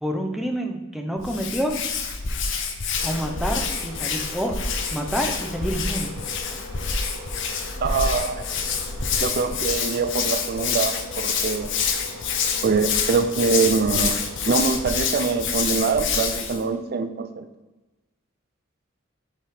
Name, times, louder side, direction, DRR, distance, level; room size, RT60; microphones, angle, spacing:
voice 1, 0.0-1.7 3.0-4.5 4.9-6.1, equal, ahead, 2 dB, 0.6 m, -28 dB
Hands, 1.2-16.6, left 5 dB, 60° left, 0.7 m, -27 dB
sound 1, 3.0-15.4, left 1 dB, 80° left, 1.4 m, -41 dB
voice 2, 7.8-8.5 9.2-11.7 12.6-14.2 14.5-17.4, right 5 dB, 50° right, 9 dB, 0.4 m, -24 dB
5.5 x 3.6 x 4.8 m, 1.1 s
head